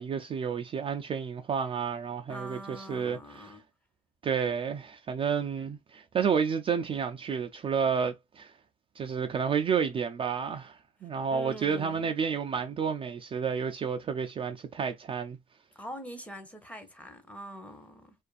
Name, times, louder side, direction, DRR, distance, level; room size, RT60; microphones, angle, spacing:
voice 1, 0.0-3.6 4.2-8.5 9.0-15.4, right 6 dB, 35° right, 0.3 m, -30 dB
voice 2, 2.3-3.6 11.3-12.1 15.7-18.1, equal, 10° left, 0.7 m, -43 dB
2.5 x 2.4 x 2.3 m
cardioid pair, 110°, 17 cm